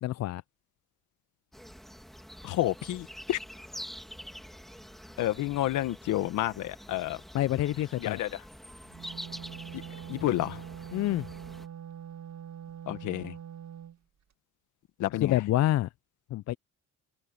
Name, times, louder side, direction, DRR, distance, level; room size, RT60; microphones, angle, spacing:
voice 1, 0.0-0.4 7.3-8.2 10.9-11.3 15.2-15.9 16.3-16.6, left 14 dB, 60° left, 0.5 m, -27 dB
sound 1, 1.5-11.7, equal, ahead, 2.6 m, -46 dB
voice 2, 2.4-3.4 5.2-7.2 8.0-8.4 9.7-9.8 10.1-10.6 12.9-13.4 15.0-15.4, left 14 dB, 85° left, 1.4 m, -30 dB
Wind instrument woodwind instrument, 8.8-14.0, right 10 dB, 65° right, 2.1 m, -43 dB
cardioid pair, 90°, 30 cm